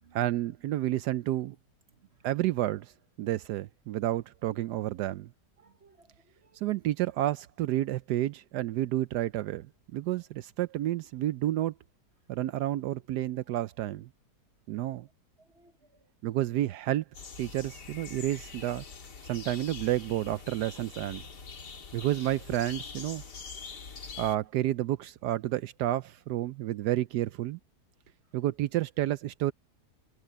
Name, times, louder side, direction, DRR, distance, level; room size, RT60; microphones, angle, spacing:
voice 1, 0.1-1.6 2.2-2.9 3.2-5.3 6.6-9.7 9.9-11.7 12.3-14.1 14.7-15.1 16.2-17.0 17.4-18.8 19.2-21.2 21.9-23.2 24.2-27.6 28.3-29.5, right 14 dB, 80° right, 1.2 m, -30 dB
voice 2, 1.9-2.3 5.6-6.6 12.9-13.0 15.4-16.1, right 4 dB, 45° right, 1.1 m, -63 dB
sound 1, 17.1-24.4, left 5 dB, 80° left, 2.8 m, -44 dB
omnidirectional pair, 1.8 m